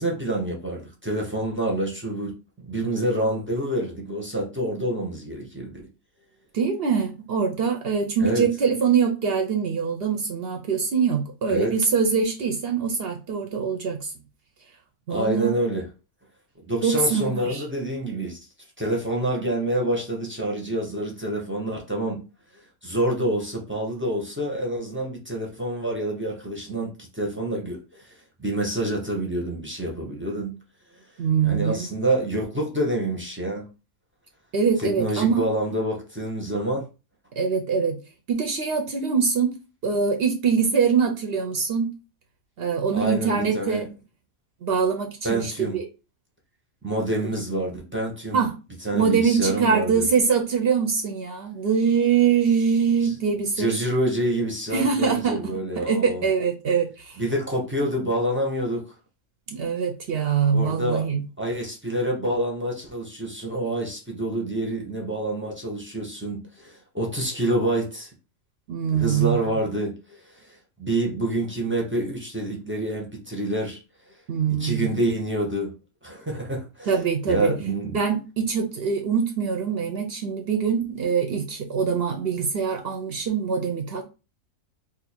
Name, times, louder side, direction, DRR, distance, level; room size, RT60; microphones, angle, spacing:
voice 1, 0.0-5.8 8.2-8.5 11.5-11.7 15.1-15.9 16.6-18.4 18.8-22.2 22.8-28.1 28.4-30.6 31.4-33.7 34.8-36.9 42.9-43.9 45.2-45.8 46.8-48.5 48.8-50.1 53.0-53.1 53.6-56.2 57.2-58.9 60.5-61.1 61.4-68.1 68.9-69.9 70.4-70.5 70.8-73.8 74.6-75.7 76.0-77.0 77.3-78.0, right 1 dB, 15° right, 0.5 m, -27 dB
voice 2, 6.5-14.1 15.1-15.6 16.8-17.6 31.2-31.9 34.5-35.5 37.4-38.0 38.3-39.5 39.8-41.9 42.6-43.9 44.6-45.8 48.3-48.5 48.9-53.7 54.7-55.4 55.8-57.2 59.5-61.2 68.7-69.6 74.3-74.9 76.9-77.5 77.9-84.0, right 6 dB, 60° right, 0.6 m, -23 dB
2.7 x 2.5 x 4.2 m
omnidirectional pair, 1.5 m